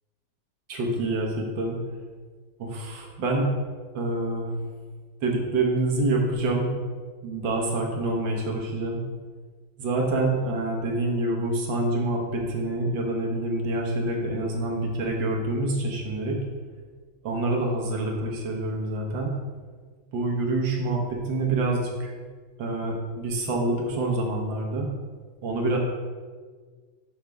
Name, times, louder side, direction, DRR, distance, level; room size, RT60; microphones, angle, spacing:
voice 1, 0.7-1.8 2.6-3.5 3.9-4.5 5.2-6.7 7.2-9.0 9.8-16.4 17.2-19.3 20.1-22.1 22.6-24.9 25.4-25.8, right 2 dB, 70° right, 0 dB, 1.7 m, -26 dB
6.4 x 5.9 x 3.4 m, 1.5 s
omnidirectional pair, 2.2 m